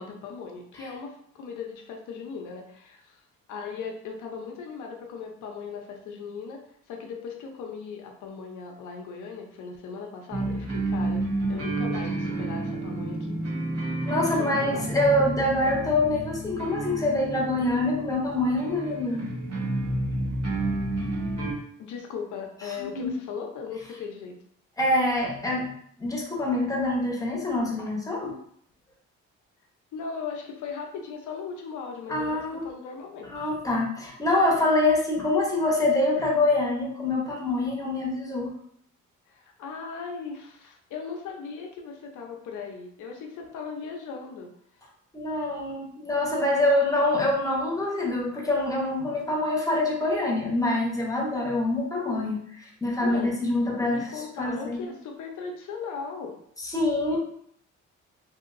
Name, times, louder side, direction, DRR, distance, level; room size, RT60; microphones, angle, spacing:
voice 1, 0.0-3.2 3.5-6.6 6.9-13.4 14.2-14.9 21.8-24.3 29.9-32.4 32.6-33.5 39.3-44.5 44.8-44.9 53.0-53.3 53.8-56.3 57.1-57.2, left 5 dB, 80° left, 2 dB, 0.7 m, -38 dB
sound 1, 10.3-21.5, right 2 dB, 55° right, 1.3 m, -30 dB
voice 2, 14.1-19.3 22.8-23.2 24.8-25.7 26.0-28.4 32.1-32.7 33.2-38.5 45.1-54.8 56.6-57.2, left 2 dB, 10° left, -1 dB, 0.9 m, -25 dB
3.3 x 2.8 x 2.6 m, 0.66 s
cardioid pair, 90°, 30 cm